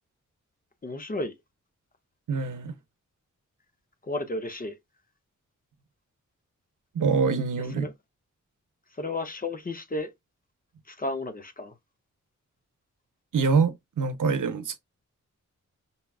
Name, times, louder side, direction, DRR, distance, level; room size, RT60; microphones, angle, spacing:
voice 1, 0.8-1.3 4.0-4.8 7.8-7.9 8.9-10.1 10.9-11.7, left 2 dB, 30° left, 0.6 m, -32 dB
voice 2, 2.3-2.7 6.9-7.9 13.3-14.8, right 5 dB, 85° right, 0.7 m, -25 dB
5.4 x 2.3 x 2.3 m
wide cardioid pair, 120°, 31 cm